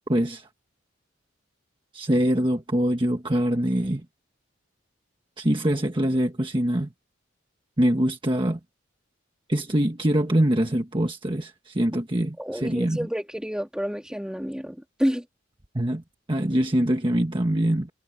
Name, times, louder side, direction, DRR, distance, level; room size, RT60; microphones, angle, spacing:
voice 1, 0.1-0.5 1.9-4.0 5.4-6.9 7.8-8.6 9.5-13.1 15.7-16.0 16.3-17.9, right 1 dB, 25° right, 1.4 m, -24 dB
voice 2, 12.4-15.2, equal, 5° right, 2.9 m, -29 dB
head